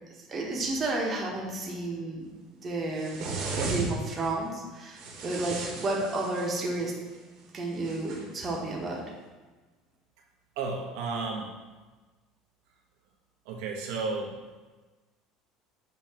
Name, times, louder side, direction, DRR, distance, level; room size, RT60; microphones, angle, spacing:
voice 1, 0.2-2.2 2.6-3.2 3.7-6.9 7.5-9.0, right 2 dB, 25° right, -2 dB, 0.9 m, -31 dB
sound 1, 3.0-4.3 5.0-6.8 7.8-8.5, right 3 dB, 60° right, 1.1 m, -35 dB
voice 2, 10.6-11.5 13.4-14.3, right 4 dB, 75° right, -1 dB, 0.7 m, -32 dB
6.5 x 2.8 x 2.8 m, 1.3 s
supercardioid pair, 125°, 0 cm